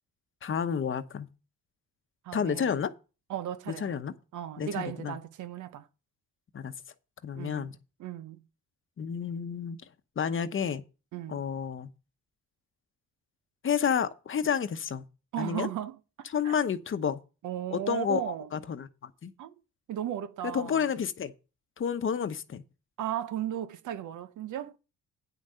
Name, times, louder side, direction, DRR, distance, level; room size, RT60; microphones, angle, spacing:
voice 1, 0.4-1.3 2.3-2.9 3.8-4.1 4.6-5.2 6.5-6.7 7.2-7.8 9.0-9.8 10.2-10.8 11.3-11.9 13.6-15.0 15.4-15.7 16.2-17.2 17.7-19.3 20.5-21.3 21.8-22.6, left 7 dB, 40° left, 0.9 m, -30 dB
voice 2, 2.2-2.8 3.3-4.0 4.3-5.9 7.3-7.7 8.0-8.4 11.1-11.4 15.3-16.6 17.4-18.5 19.4-19.5 19.9-20.9 23.0-24.8, right 11 dB, 75° right, 0.9 m, -36 dB
9.4 x 6.3 x 5.6 m
cardioid pair, 90°, 30 cm